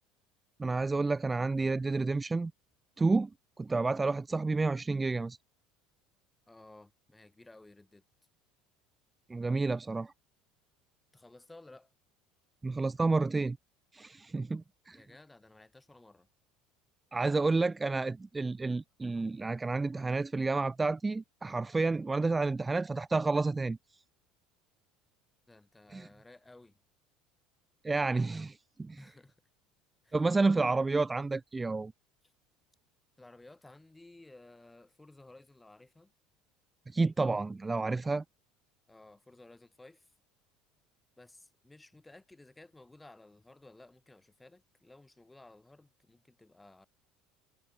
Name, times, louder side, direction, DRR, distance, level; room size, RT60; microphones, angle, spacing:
voice 1, 0.6-2.5 3.0-3.3 3.6-5.4 9.3-10.1 12.6-13.6 13.9-15.0 17.1-23.8 25.9-26.1 27.8-29.0 30.1-31.9 36.9-38.2, right 3 dB, 20° right, 0.4 m, -30 dB
voice 2, 6.5-8.0 11.1-11.9 14.9-16.3 25.5-26.8 29.0-29.4 30.0-30.2 33.2-36.1 38.9-40.1 41.2-46.9, left 2 dB, 10° left, 5.6 m, -56 dB
hypercardioid pair, 75°, 0 cm